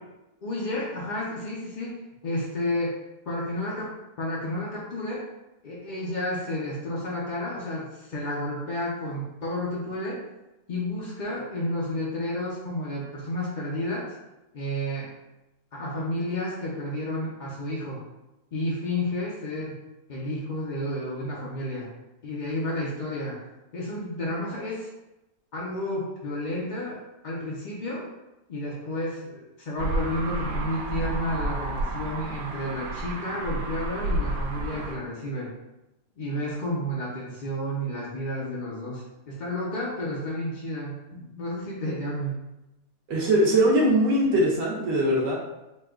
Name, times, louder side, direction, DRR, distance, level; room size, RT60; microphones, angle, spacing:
voice 1, 0.4-2.0 2.2-3.0 3.3-3.9 4.2-5.2 5.6-10.2 10.7-14.1 14.5-15.1 15.7-18.0 18.5-19.8 20.1-21.9 22.2-23.4 23.7-24.9 25.5-28.1 28.5-35.5 36.2-42.4, left 1 dB, 50° left, -5 dB, 0.5 m, -31 dB
sound 1, 29.8-35.0, right 2 dB, 85° right, 1.1 m, -31 dB
voice 2, 43.1-45.4, right 1 dB, 65° right, -4 dB, 1.3 m, -21 dB
4.2 x 2.2 x 3.6 m, 0.97 s
omnidirectional pair, 1.6 m